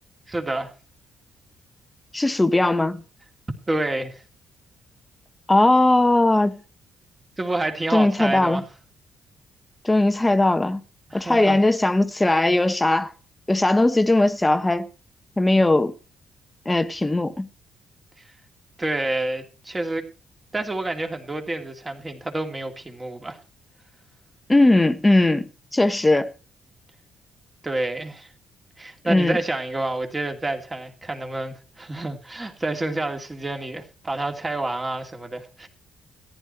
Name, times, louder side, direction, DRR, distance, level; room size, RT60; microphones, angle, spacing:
voice 1, 0.3-0.7 3.7-4.2 7.4-8.7 11.1-11.6 18.8-20.0 20.5-23.4 27.6-28.3 28.8-35.7, right 2 dB, 20° right, 2.6 m, -28 dB
voice 2, 2.1-3.0 5.5-6.6 7.9-8.6 9.8-10.8 11.1-13.1 13.5-14.9 15.4-15.9 16.7-17.5 24.5-26.3 29.0-29.4, left 2 dB, 15° left, 1.1 m, -19 dB
14.0 x 10.5 x 4.4 m
cardioid pair, 90°, 0 cm